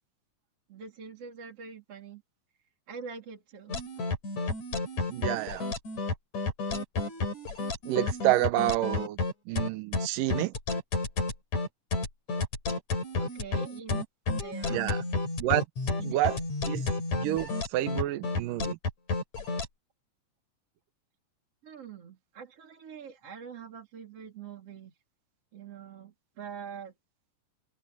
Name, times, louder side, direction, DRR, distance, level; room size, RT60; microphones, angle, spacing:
voice 1, 0.7-2.2 2.9-3.8 13.2-14.0 14.3-14.9 16.0-16.2 21.6-24.9 25.5-26.9, right 6 dB, 45° right, 4.3 m, -44 dB
sound 1, 3.7-19.7, left 3 dB, 60° left, 5.9 m, -31 dB
voice 2, 5.0-5.7 7.9-9.2 9.5-10.5 14.7-15.0 15.4-15.6 16.0-16.4 16.7-16.8 17.2-18.8, right 15 dB, 85° right, 2.5 m, -28 dB
omnidirectional pair, 3.7 m